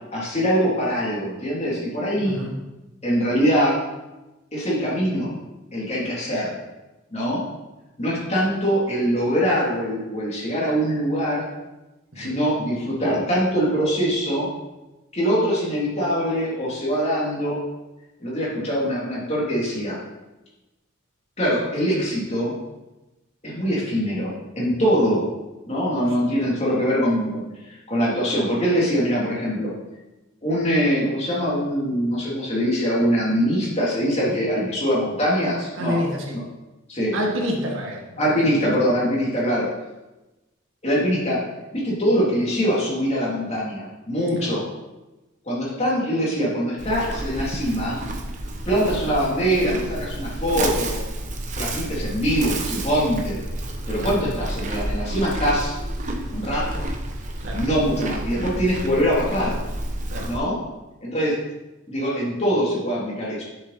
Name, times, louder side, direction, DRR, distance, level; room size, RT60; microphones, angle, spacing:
voice 1, 0.1-2.4 3.0-3.8 4.5-5.3 5.7-6.6 7.1-7.4 8.0-11.5 12.1-14.5 15.1-17.6 18.2-20.0 21.4-22.5 23.4-25.2 25.7-27.4 27.9-29.7 30.4-36.4 36.9-37.1 38.2-39.7 40.8-41.4 41.7-44.6 45.4-48.0 48.6-51.0 51.6-53.4 53.9-55.8 56.3-56.9 57.5-59.6 60.2-60.6 61.0-61.4 61.9-63.4, equal, 30° left, -6 dB, 3.2 m, -23 dB
voice 2, 35.8-36.4 37.1-38.6 44.4-44.5 54.0-54.2 57.4-57.6 60.1-60.3, equal, 65° right, -1 dB, 1.9 m, -28 dB
Livestock farm animals working animals, 46.8-60.4, right 1 dB, 35° right, 1.0 m, -30 dB
11.0 x 7.0 x 4.3 m, 1.0 s
head